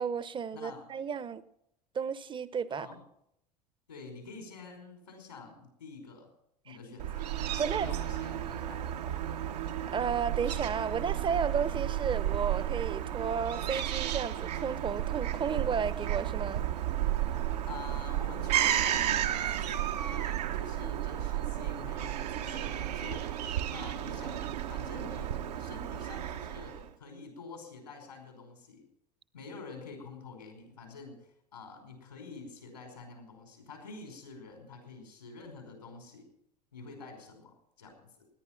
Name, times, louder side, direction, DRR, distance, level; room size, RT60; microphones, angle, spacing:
voice 1, 0.0-1.4 1.9-2.9 6.7-6.8 7.6-7.9 9.4-9.5 9.9-16.6, right 6 dB, 25° right, 16 dB, 0.8 m, -33 dB
voice 2, 0.5-0.9 2.7-3.0 3.9-6.3 6.6-8.9 17.6-28.8 29.3-36.3 36.7-38.3, left 4 dB, 85° left, 3 dB, 5.1 m, -47 dB
Fowl / Gull seagull, 7.0-26.9, right 12 dB, 75° right, 1.1 m, -33 dB
18.0 x 10.5 x 6.0 m, 0.76 s
hypercardioid pair, 75°, 21 cm